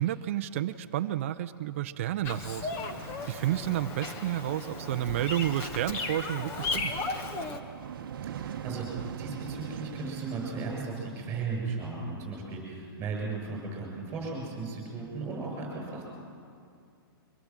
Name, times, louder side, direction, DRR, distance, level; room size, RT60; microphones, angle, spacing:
voice 1, 0.0-2.7 3.1-6.9, right 13 dB, 35° right, 11 dB, 0.5 m, -31 dB
Bird vocalization bird call bird song, 2.2-7.6, left 3 dB, 20° left, 1.0 m, -36 dB
sound 1, 2.7-10.9, right 8 dB, 60° right, 0.9 m, -42 dB
voice 2, 8.3-8.9 9.2-16.1, right 4 dB, 15° right, 0 dB, 7.2 m, -36 dB
24.5 x 18.5 x 7.4 m, 2.4 s
hypercardioid pair, 170°, 13 cm